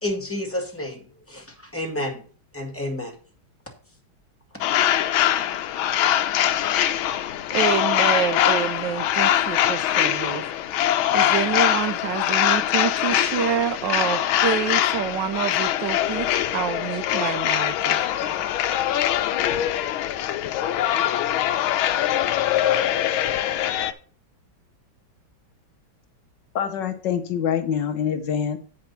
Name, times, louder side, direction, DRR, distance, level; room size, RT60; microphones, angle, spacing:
voice 1, 0.0-2.2 2.5-3.1, left 1 dB, 5° left, 1 dB, 1.8 m, -30 dB
sound 1, 4.6-23.9, left 11 dB, 85° left, 1.5 m, -23 dB
voice 2, 7.5-10.5 11.1-18.3, right 8 dB, 70° right, 10 dB, 1.2 m, -27 dB
voice 3, 26.5-28.6, left 8 dB, 65° left, 8 dB, 1.3 m, -25 dB
8.5 x 5.2 x 5.7 m, 0.41 s
omnidirectional pair, 2.2 m